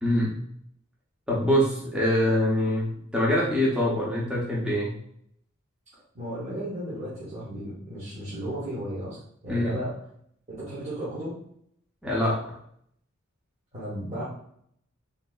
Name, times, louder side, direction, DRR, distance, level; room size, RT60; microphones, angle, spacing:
voice 1, 0.0-0.3 1.3-4.9 9.5-9.7 12.0-12.6, equal, 5° right, -6 dB, 0.6 m, -24 dB
voice 2, 6.1-10.0 10.5-11.4 13.7-14.2, equal, 35° right, -10 dB, 1.0 m, -34 dB
3.8 x 2.6 x 2.3 m, 0.69 s
head